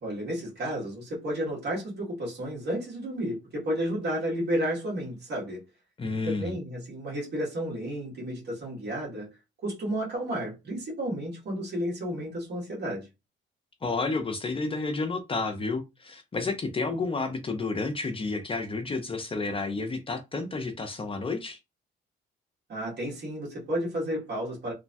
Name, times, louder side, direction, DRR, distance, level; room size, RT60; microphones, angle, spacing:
voice 1, 0.0-5.6 6.2-9.3 9.6-13.1 22.7-24.7, equal, 55° right, 1.6 m, -32 dB
voice 2, 6.0-6.5 13.8-21.6, left 3 dB, 25° left, 0.5 m, -31 dB
3.1 x 2.2 x 2.6 m
cardioid pair, 90°, 20 cm